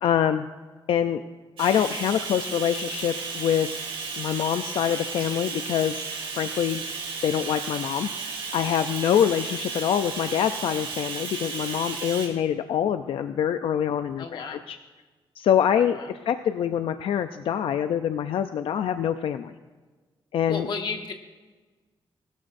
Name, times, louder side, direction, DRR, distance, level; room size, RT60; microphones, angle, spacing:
voice 1, 0.0-0.5 0.9-1.2 1.6-3.7 4.2-6.1 6.4-6.8 7.2-14.8 15.4-19.5 20.3-20.7, left 9 dB, 90° left, 9 dB, 0.5 m, -25 dB
Bathtub (filling or washing), 1.6-12.3, right 5 dB, 90° right, 3.0 m, -34 dB
voice 2, 14.2-14.6 15.8-16.1 20.5-21.1, left 5 dB, 55° left, 4 dB, 1.4 m, -33 dB
20.0 x 12.5 x 2.6 m, 1.3 s
wide cardioid pair, 145°, 9 cm